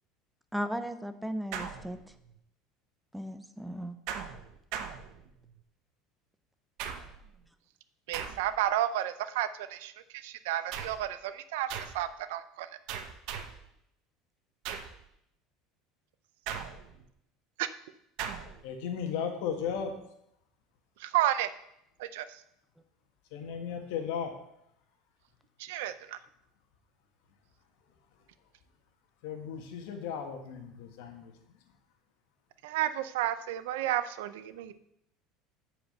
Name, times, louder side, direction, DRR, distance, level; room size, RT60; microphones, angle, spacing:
voice 1, 0.5-2.0 3.1-4.0, equal, 5° right, 10 dB, 0.5 m, -36 dB
sound 1, 1.5-2.4 4.1-5.6 6.8-7.4 8.1-8.7 10.7-11.1 11.7-12.1 12.9-13.7 14.6-15.1 16.5-17.1 18.2-18.6, right 8 dB, 60° right, 1.0 m, -39 dB
voice 2, 8.1-9.9 10.2-11.7 11.9-12.7 17.6-17.7 21.0-21.5 22.0-22.2 25.6-25.9 32.6-34.7, right 12 dB, 90° right, 13 dB, 0.6 m, -31 dB
voice 3, 18.6-19.9 23.3-24.3 29.2-31.3, left 7 dB, 75° left, 5 dB, 1.6 m, -35 dB
8.5 x 5.0 x 6.6 m, 0.77 s
cardioid pair, 150°, 0 cm